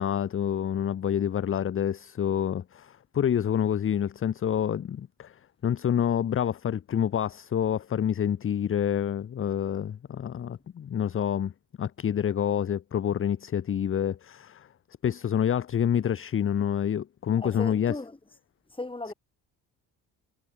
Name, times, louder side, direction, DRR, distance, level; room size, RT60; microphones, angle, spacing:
voice 1, 0.0-11.5 11.8-14.7 15.0-18.0, left 9 dB, 25° left, 0.6 m, -27 dB
voice 2, 17.4-18.2 18.7-19.1, left 2 dB, 10° left, 1.7 m, -36 dB
figure-of-eight pair, 45°, 50 cm